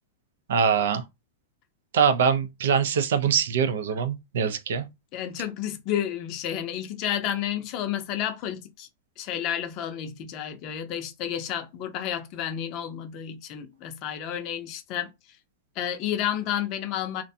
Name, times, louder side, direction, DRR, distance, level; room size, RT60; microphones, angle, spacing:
voice 1, 0.5-1.0 1.9-4.9, right 7 dB, 80° right, 0.5 m, -23 dB
voice 2, 5.1-8.9 9.2-15.1 15.8-17.2, left 10 dB, 35° left, 0.5 m, -31 dB
2.5 x 2.1 x 2.6 m
supercardioid pair, 160°, 0 cm